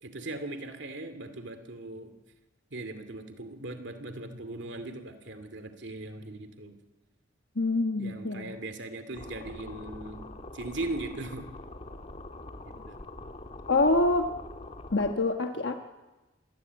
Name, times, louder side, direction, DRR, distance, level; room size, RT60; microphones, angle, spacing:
voice 1, 0.0-2.1 2.7-6.8 8.0-10.3 10.5-11.4 12.9-13.0, right 2 dB, 65° right, 8 dB, 2.4 m, -39 dB
voice 2, 7.6-8.5 13.7-14.3 14.9-15.7, left 2 dB, 65° left, 5 dB, 1.3 m, -25 dB
sound 1, 9.1-15.1, left 2 dB, 35° left, 1.6 m, -44 dB
26.5 x 19.5 x 8.1 m, 1.1 s
head